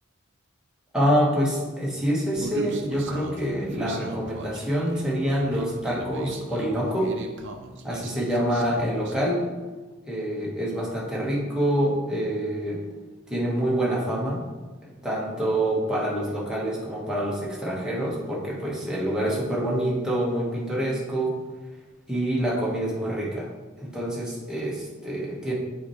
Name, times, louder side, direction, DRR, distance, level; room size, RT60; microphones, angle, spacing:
voice 1, 0.9-7.1 7.8-9.5 10.0-12.8 13.3-14.5 15.0-21.4 22.1-23.5 23.8-25.5, equal, 5° right, -5 dB, 1.4 m, -26 dB
Human voice, 2.4-9.2, right 2 dB, 60° right, 0.7 m, -38 dB
8.3 x 4.4 x 3.2 m, 1.3 s
head